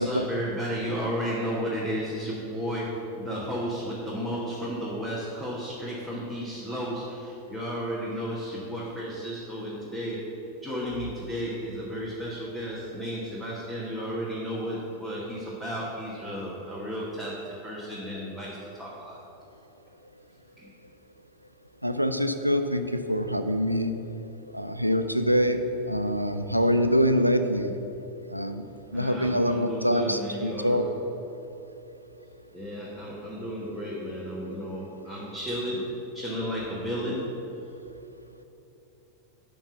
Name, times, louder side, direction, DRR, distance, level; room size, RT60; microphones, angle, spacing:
voice 1, 0.0-10.3 10.6-18.5 18.8-19.2 20.6-20.7 28.9-30.9 32.5-37.4, equal, 5° left, -6 dB, 1.3 m, -33 dB
voice 2, 21.8-24.0 24.5-25.6 25.9-27.7 28.3-28.6 28.9-30.9 34.4-34.5, equal, 90° right, 8 dB, 0.4 m, -25 dB
5.9 x 5.4 x 6.9 m, 3.0 s
figure-of-eight pair, 90°, 0 cm